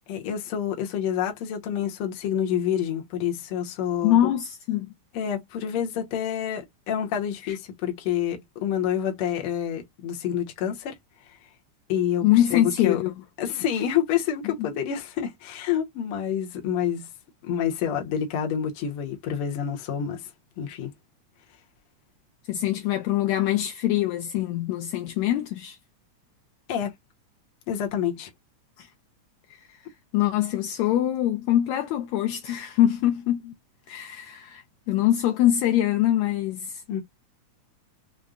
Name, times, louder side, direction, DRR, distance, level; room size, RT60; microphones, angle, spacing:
voice 1, 0.1-4.2 5.1-10.9 11.9-13.0 13.4-17.1 17.4-20.2 20.6-20.9 26.7-26.9 27.7-28.3 36.9-37.0, left 9 dB, 60° left, 1.6 m, -28 dB
voice 2, 4.0-4.9 7.4-7.6 12.2-13.2 14.6-14.7 22.5-25.8 28.8-28.9 29.5-29.8 30.1-33.5 33.9-36.8, left 12 dB, 80° left, 1.7 m, -24 dB
5.2 x 2.2 x 2.3 m
omnidirectional pair, 3.4 m